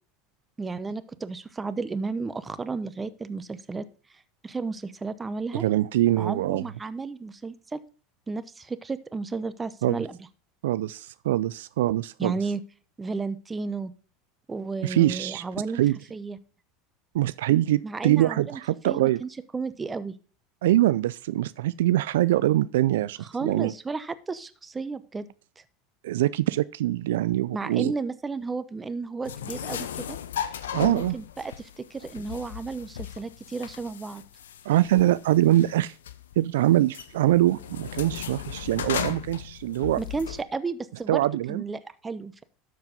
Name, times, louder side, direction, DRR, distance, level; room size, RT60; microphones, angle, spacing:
voice 1, 0.6-3.9 4.4-5.6 6.2-7.8 8.3-10.2 12.2-12.6 13.0-13.9 14.5-15.8 16.1-16.4 17.8-18.6 18.8-20.1 23.2-25.3 25.6-25.7 27.5-30.2 30.8-34.2 40.0-41.2 41.5-42.4, right 4 dB, 20° right, 0.8 m, -33 dB
voice 2, 5.5-6.6 9.8-10.0 10.6-12.4 14.8-15.4 15.7-16.0 17.1-19.2 20.6-23.7 26.0-27.9 30.7-31.2 34.7-35.9 36.4-40.0 41.1-41.6, right 14 dB, 80° right, 0.3 m, -23 dB
sound 1, 29.2-40.4, left 9 dB, 90° left, 0.7 m, -36 dB
12.5 x 4.6 x 5.2 m
hypercardioid pair, 90°, 0 cm